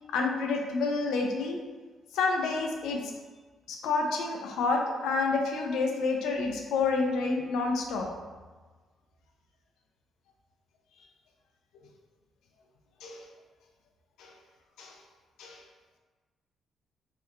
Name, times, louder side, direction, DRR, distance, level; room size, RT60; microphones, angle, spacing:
voice 1, 0.1-1.6 2.1-3.1 3.7-8.1 13.0-13.3 14.2-14.3 14.8-15.0 15.4-15.6, left 4 dB, 85° left, 2 dB, 0.3 m, -29 dB
2.7 x 2.1 x 2.3 m, 1.3 s
cardioid pair, 90°, 0 cm